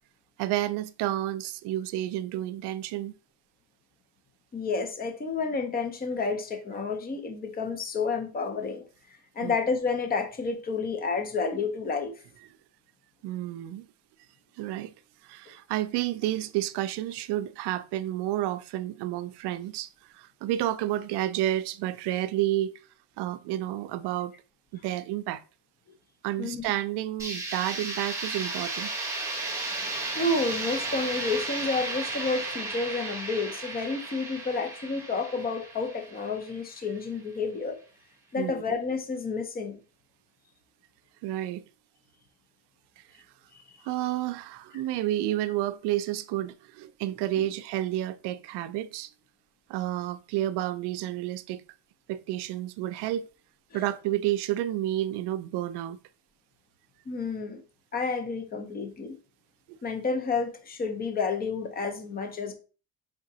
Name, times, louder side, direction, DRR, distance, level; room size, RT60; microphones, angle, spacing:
voice 1, 0.4-3.1 9.4-9.5 13.2-13.8 14.6-14.9 15.2-19.9 20.1-22.7 23.2-24.3 24.7-25.4 26.2-28.9 38.4-38.6 41.2-41.6 43.8-49.1 49.7-51.6 52.1-53.3 53.7-56.0, right 14 dB, 75° right, 0.5 m, -30 dB
voice 2, 4.5-8.8 9.4-12.1 26.4-26.6 29.9-37.8 38.3-39.8 47.3-47.5 53.7-53.8 57.1-57.6 57.9-59.1 59.8-62.5, left 4 dB, 25° left, 0.6 m, -30 dB
sound 1, 27.2-37.0, right 2 dB, 5° right, 0.9 m, -34 dB
5.0 x 3.6 x 2.7 m
cardioid pair, 155°, 41 cm